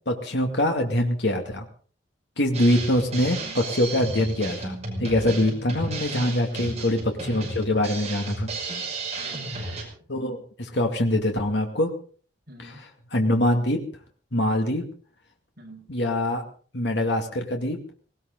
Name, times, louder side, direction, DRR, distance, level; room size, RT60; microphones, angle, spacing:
voice 1, 0.1-1.7 2.4-8.5 10.1-11.9 12.6-12.7 13.1-13.8 14.3-14.8 15.9-16.4 16.7-17.8, left 1 dB, 70° left, 3 dB, 2.3 m, -24 dB
Drum kit, 2.5-9.8, right 2 dB, 35° right, 5.8 m, -33 dB
voice 2, 6.5-6.9 9.2-10.0 12.5-12.8 15.6-15.9, right 2 dB, 55° right, 1 dB, 5.7 m, -46 dB
19.0 x 18.5 x 4.0 m, 0.43 s
head